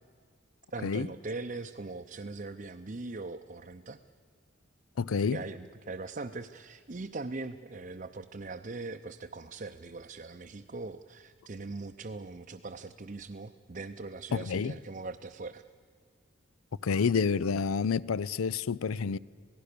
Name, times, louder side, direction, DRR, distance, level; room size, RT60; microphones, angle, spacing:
voice 1, 0.7-4.0 5.3-15.6, right 3 dB, 40° right, 0.6 m, -41 dB
voice 2, 5.0-5.4 14.3-14.7 16.8-19.2, left 5 dB, 90° left, 0.5 m, -28 dB
27.0 x 18.5 x 6.8 m
head